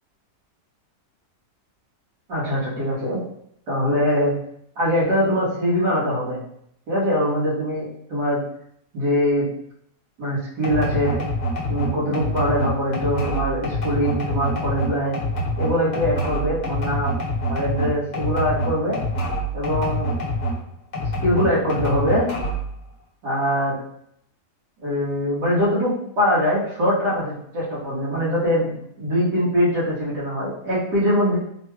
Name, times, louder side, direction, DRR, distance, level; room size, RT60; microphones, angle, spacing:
voice 1, 2.3-3.2 3.7-4.3 4.8-6.4 6.9-8.4 8.9-9.5 10.2-11.2 11.7-15.2 15.6-17.2 17.5-19.0 19.5-20.1 21.2-22.3 23.2-23.8 24.8-28.7 29.0-31.4, equal, 80° right, -8 dB, 2.0 m, -22 dB
sound 1, 10.6-20.6 20.9-22.7, equal, 35° left, 0.7 m, -26 dB
3.9 x 3.1 x 2.3 m, 0.71 s
omnidirectional pair, 1.8 m